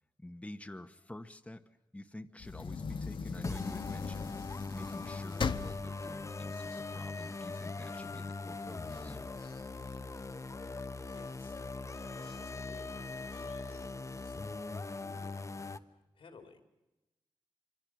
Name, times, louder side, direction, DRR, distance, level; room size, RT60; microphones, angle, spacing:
voice 1, 0.2-1.6 1.9-4.3 4.7-9.2, left 1 dB, 15° left, 6 dB, 1.2 m, -48 dB
sound 1, 2.4-7.6 8.1-8.2 8.5-10.6 11.1-11.6 12.2-12.4 12.6-12.7 13.2-13.8, left 5 dB, 65° left, 1.1 m, -40 dB
sound 2, 3.4-15.8, left 3 dB, 35° left, 1.0 m, -41 dB
voice 2, 11.1-16.6, left 4 dB, 85° left, 5 dB, 3.0 m, -58 dB
26.0 x 24.5 x 6.2 m, 0.99 s
cardioid pair, 55°, 9 cm